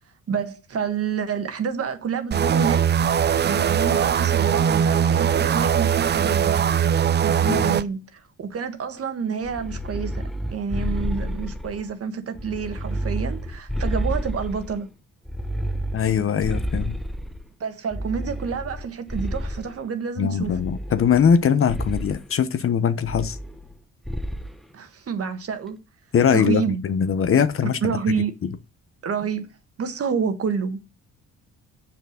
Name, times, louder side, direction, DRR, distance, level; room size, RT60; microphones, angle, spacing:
voice 1, 0.3-2.8 3.4-6.6 7.2-10.2 10.5-14.9 17.6-20.6 24.7-25.8 26.3-26.8 27.6-28.3 29.0-29.5 29.8-30.9, right 6 dB, 50° right, 1.5 m, -28 dB
sound 1, 2.3-7.8, right 8 dB, 35° right, 0.5 m, -20 dB
voice 2, 7.5-7.8 15.9-16.9 20.2-23.4 26.1-27.8 28.4-28.5, left 7 dB, 45° left, 0.9 m, -21 dB
sound 2, 9.4-11.9 12.3-14.8 15.3-17.4 17.9-19.8 20.4-21.4 21.7-22.2 23.0-23.8 24.1-24.5, equal, ahead, 0.8 m, -30 dB
7.0 x 5.9 x 6.4 m
cardioid pair, 90°, 30 cm